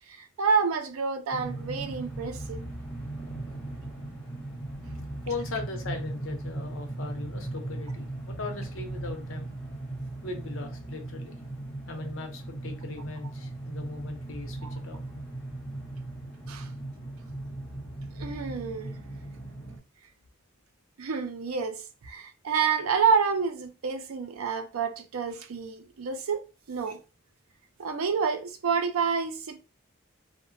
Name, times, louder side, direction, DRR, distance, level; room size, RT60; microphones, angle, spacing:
voice 1, 0.1-2.6 14.6-14.8 16.5-16.7 18.2-19.0 21.0-26.4 26.7-27.0 27.8-29.6, right 5 dB, 90° right, 0.5 m, -28 dB
sound 1, 1.3-19.8, right 2 dB, 5° left, 0.7 m, -38 dB
voice 2, 5.2-9.5 10.2-11.4 11.9-15.0, left 3 dB, 70° left, 0.7 m, -38 dB
2.8 x 2.1 x 2.5 m
head